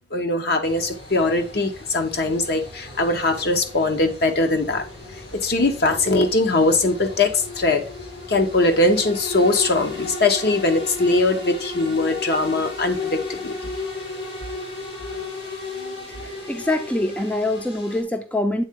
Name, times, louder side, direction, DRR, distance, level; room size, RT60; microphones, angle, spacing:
voice 1, 0.1-4.8 5.3-7.9 8.3-13.5, left 2 dB, 60° left, 5 dB, 0.9 m, -21 dB
sound 1, 0.6-18.0, left 3 dB, 80° left, 2.3 m, -35 dB
voice 2, 16.1-18.6, left 1 dB, 10° left, 6 dB, 0.5 m, -25 dB
8.0 x 3.7 x 3.6 m, 0.34 s
head